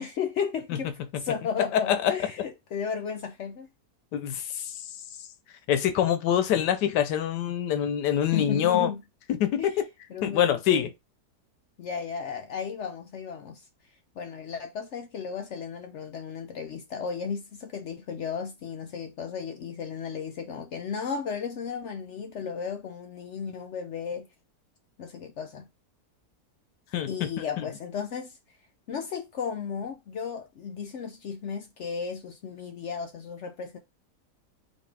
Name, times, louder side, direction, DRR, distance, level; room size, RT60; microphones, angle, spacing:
voice 1, 0.0-3.7 8.3-9.0 9.6-9.7 10.1-10.9 11.8-13.7 14.2-24.3 25.0-25.7 27.1-28.4 28.9-33.8, left 6 dB, 70° left, 0.6 m, -34 dB
voice 2, 1.7-2.1 4.1-4.7 5.7-8.9 9.4-9.7 10.2-10.9 26.9-27.3, left 10 dB, 90° left, 1.3 m, -25 dB
5.3 x 2.7 x 3.3 m
omnidirectional pair, 1.8 m